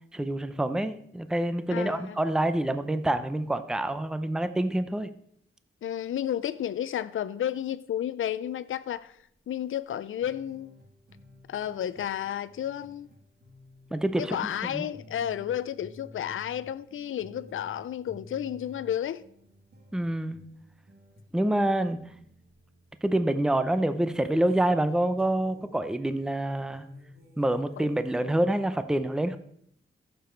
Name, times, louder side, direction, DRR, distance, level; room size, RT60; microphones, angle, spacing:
voice 1, 0.1-5.1 13.9-14.4 14.7-14.9 19.9-20.4 21.3-22.0 23.0-26.9 27.4-29.4, right 1 dB, 5° right, 0.5 m, -27 dB
voice 2, 1.7-2.2 5.8-9.2 9.5-10.8 11.5-13.1 14.2-19.2, left 10 dB, 75° left, 0.5 m, -32 dB
sound 1, 8.9-9.2 9.5-9.6 10.2-28.2, left 1 dB, 50° right, 2.3 m, -53 dB
14.5 x 6.8 x 4.5 m
wide cardioid pair, 155°, 21 cm